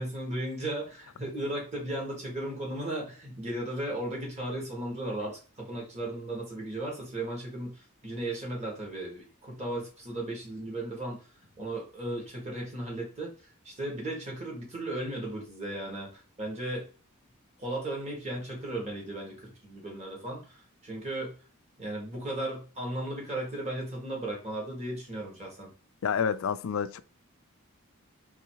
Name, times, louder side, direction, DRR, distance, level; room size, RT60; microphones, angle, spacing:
voice 1, 0.0-11.2 11.6-13.3 13.6-16.9 17.6-21.3 21.8-25.7, right 1 dB, 30° right, 1.8 m, -36 dB
voice 2, 26.0-27.0, left 7 dB, 70° left, 0.4 m, -28 dB
3.3 x 3.3 x 4.6 m
head